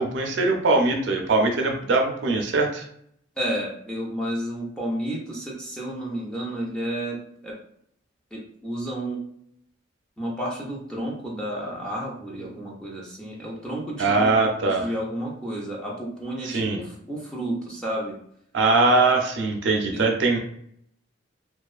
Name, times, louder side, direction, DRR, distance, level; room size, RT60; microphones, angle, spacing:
voice 1, 0.0-2.9 14.0-14.9 16.4-16.8 18.5-20.4, right 3 dB, 60° right, 3 dB, 0.4 m, -21 dB
voice 2, 3.4-7.2 7.4-7.6 8.3-9.2 10.2-14.3 14.6-18.2 19.9-20.1, right 1 dB, 5° left, -4 dB, 0.4 m, -31 dB
2.3 x 2.3 x 2.4 m, 0.68 s
head